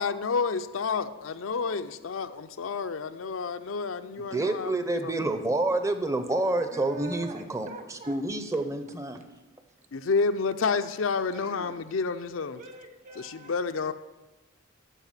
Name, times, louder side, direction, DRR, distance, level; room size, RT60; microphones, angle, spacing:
voice 1, 0.0-5.1 9.9-12.6 13.2-13.9, left 4 dB, 75° left, 10 dB, 0.5 m, -29 dB
voice 2, 4.2-7.7 8.1-9.2, right 2 dB, 15° right, 8 dB, 0.7 m, -28 dB
voice 3, 6.7-8.2 11.3-11.7 12.5-13.9, right 2 dB, 35° right, 6 dB, 1.2 m, -44 dB
13.5 x 4.9 x 7.3 m, 1.1 s
head